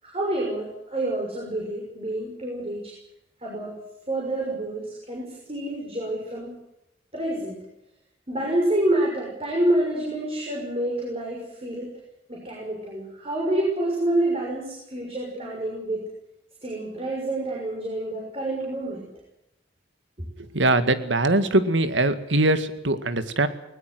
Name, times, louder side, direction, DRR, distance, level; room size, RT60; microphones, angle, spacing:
voice 1, 0.0-2.9 3.4-3.8 4.1-6.6 7.1-7.6 8.3-11.9 12.3-16.0 16.6-19.0, right 1 dB, 30° right, -2 dB, 6.3 m, -28 dB
voice 2, 20.5-23.5, right 2 dB, 80° right, 11 dB, 2.1 m, -22 dB
21.0 x 20.0 x 8.0 m, 0.85 s
head